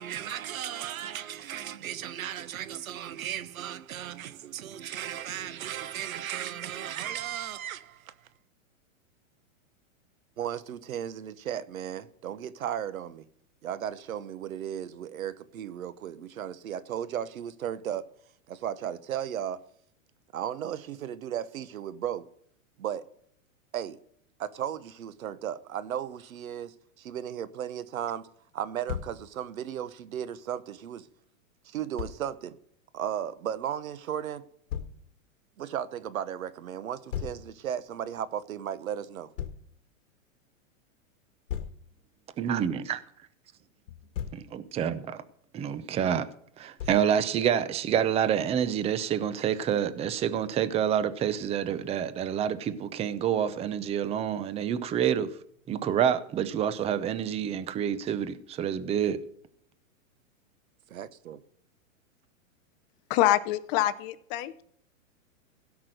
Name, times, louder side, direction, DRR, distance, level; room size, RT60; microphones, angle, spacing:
voice 1, 0.0-8.3 10.4-13.3 13.6-18.1 18.5-19.6 20.3-22.3 22.8-23.1 23.7-24.0 24.4-28.3 28.5-31.1 31.6-32.6 32.9-34.4 35.6-39.3 60.9-61.4, right 10 dB, 85° right, 1.1 m, -35 dB
Thump thud, 28.9-29.2 32.0-32.2 34.7-35.0 37.1-37.4 39.4-39.6 41.5-41.8 43.9-44.5 46.8-47.1, left 9 dB, 70° left, 1.7 m, -35 dB
voice 2, 42.4-43.0 44.3-45.2 45.5-46.3 46.6-55.3 55.7-59.2, right 9 dB, 15° right, 0.6 m, -28 dB
voice 3, 63.1-64.6, left 14 dB, 35° left, 0.7 m, -25 dB
16.5 x 6.0 x 6.5 m
hypercardioid pair, 135°, 41 cm